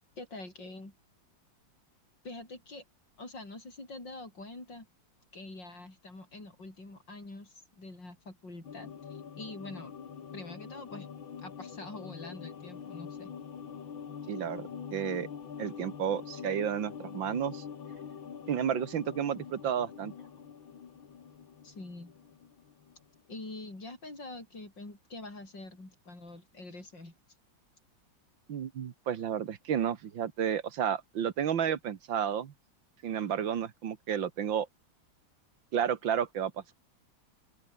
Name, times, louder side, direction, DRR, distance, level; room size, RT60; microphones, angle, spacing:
voice 1, 0.2-0.9 2.2-2.8 3.2-4.9 5.3-9.9 10.3-11.1 11.4-13.3 20.2-20.3 21.6-22.2 23.3-27.1, left 2 dB, 65° left, 8.0 m, -45 dB
sound 1, 8.6-23.2 23.5-23.6, left 7 dB, 85° left, 2.7 m, -45 dB
voice 2, 14.3-15.3 15.6-17.6 18.5-20.1 28.5-32.5 33.0-34.7 35.7-36.7, right 8 dB, 80° right, 2.1 m, -32 dB
open air
omnidirectional pair, 2.1 m